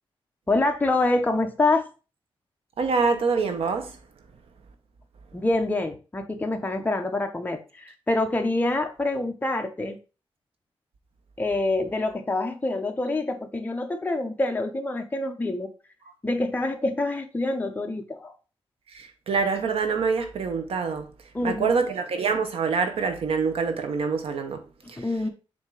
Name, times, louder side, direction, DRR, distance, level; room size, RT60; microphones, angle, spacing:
voice 1, 0.5-1.9 5.3-10.0 11.4-15.7 16.2-18.3 21.3-21.7 25.0-25.3, left 2 dB, 20° left, 0.9 m, -26 dB
voice 2, 2.8-4.0 18.9-21.1 21.4-24.6 24.9-25.1, right 5 dB, 80° right, 1.1 m, -25 dB
7.2 x 2.9 x 4.9 m
wide cardioid pair, 135°, 10 cm